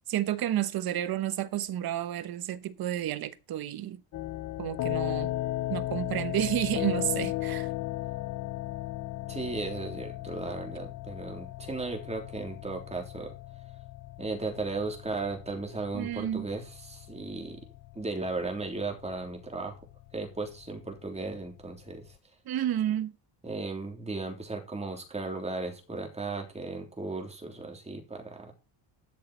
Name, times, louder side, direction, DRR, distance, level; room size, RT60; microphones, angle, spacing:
voice 1, 0.1-4.0 4.6-5.3 5.7-7.7 15.9-16.5 22.4-23.2, right 12 dB, 50° right, 1.1 m, -31 dB
sound 1, 4.1-22.1, left 17 dB, 45° left, 0.4 m, -36 dB
voice 2, 9.3-13.3 14.2-17.6 17.9-19.9 20.1-22.1 23.4-28.5, right 3 dB, 15° right, 3.4 m, -36 dB
12.5 x 6.7 x 4.3 m
cardioid pair, 125°, 45 cm